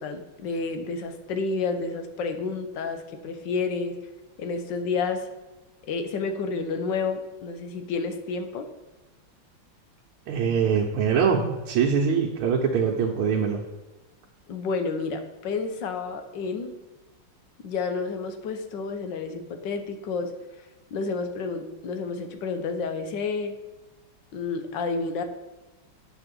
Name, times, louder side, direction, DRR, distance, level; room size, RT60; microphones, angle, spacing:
voice 1, 0.0-4.0 4.4-5.3 5.8-8.7 14.5-16.7 17.6-20.3 20.9-23.5 24.3-25.2, left 4 dB, 65° left, 7 dB, 1.3 m, -30 dB
voice 2, 10.3-13.6, right 6 dB, 85° right, -1 dB, 1.7 m, -23 dB
8.0 x 5.0 x 6.8 m, 1.1 s
omnidirectional pair, 2.3 m